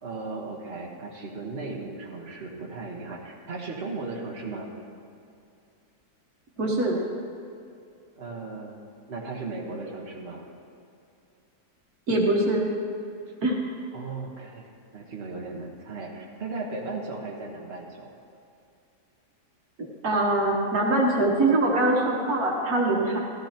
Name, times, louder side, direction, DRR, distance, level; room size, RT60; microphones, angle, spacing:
voice 1, 0.0-4.7 8.2-8.8 9.1-10.5 13.9-18.1, right 3 dB, 45° right, -1 dB, 1.5 m, -36 dB
voice 2, 6.6-7.0 12.1-12.7 13.4-13.6 19.8-23.2, right 2 dB, 75° right, -1 dB, 1.8 m, -23 dB
15.5 x 13.5 x 2.9 m, 2.5 s
omnidirectional pair, 1.6 m